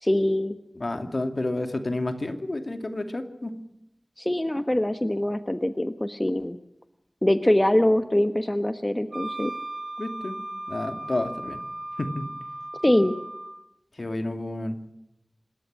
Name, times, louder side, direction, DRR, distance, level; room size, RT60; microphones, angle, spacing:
voice 1, 0.0-0.6 4.2-6.6 7.2-9.5 12.8-13.2, left 1 dB, 25° left, 10 dB, 1.1 m, -23 dB
voice 2, 0.8-3.5 10.0-10.4 10.7-11.6 12.0-12.3 14.0-14.8, left 2 dB, 60° left, 7 dB, 2.4 m, -30 dB
Wind instrument woodwind instrument, 9.1-13.6, right 1 dB, 55° right, 2.1 m, -36 dB
27.0 x 13.5 x 7.6 m, 0.83 s
wide cardioid pair, 40°, 0 cm